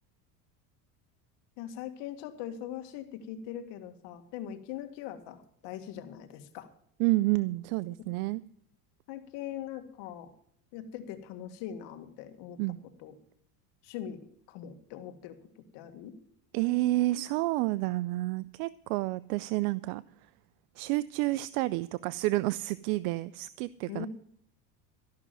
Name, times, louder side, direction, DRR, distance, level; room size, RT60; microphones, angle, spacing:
voice 1, 1.6-6.7 9.1-10.3 10.7-12.6 13.0-13.1 13.8-15.4 15.7-16.2 23.9-24.1, left 10 dB, 60° left, 7 dB, 1.9 m, -41 dB
voice 2, 7.0-8.4 12.6-12.8 16.5-20.0 20.8-24.1, right 19 dB, 65° right, 18 dB, 0.5 m, -29 dB
13.5 x 6.1 x 9.1 m, 0.65 s
supercardioid pair, 115°, 48 cm